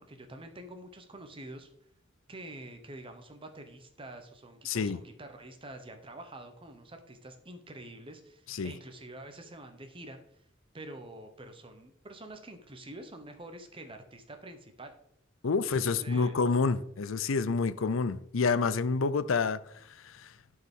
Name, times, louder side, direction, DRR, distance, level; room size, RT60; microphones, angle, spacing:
voice 1, 0.0-1.7 2.3-10.2 10.7-14.9 15.6-16.3, right 1 dB, 25° right, 1.0 m, -47 dB
voice 2, 4.6-5.0 8.5-8.7 15.4-19.6 20.0-20.3, left 4 dB, 80° left, 0.6 m, -28 dB
11.5 x 4.8 x 5.4 m
head